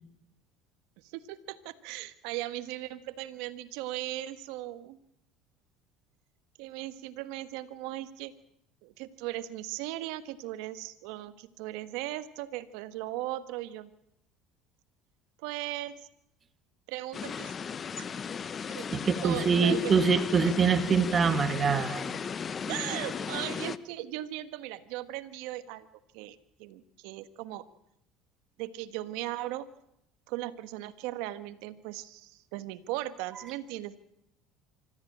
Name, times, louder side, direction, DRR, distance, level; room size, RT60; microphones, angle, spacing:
voice 1, 1.0-5.0 6.6-8.3 8.8-13.9 15.4-16.1 16.9-17.6 18.0-18.1 18.7-19.9 20.4-20.5 22.7-25.9 26.1-27.6 28.6-29.7 30.3-34.0, right 15 dB, 80° right, 12 dB, 1.4 m, -38 dB
sound 1, 17.1-23.8, left 6 dB, 35° left, 0.9 m, -36 dB
voice 2, 18.9-22.2 22.7-22.8, right 5 dB, 35° right, 11 dB, 1.7 m, -25 dB
25.5 x 14.0 x 8.7 m, 0.78 s
supercardioid pair, 95°, 0 cm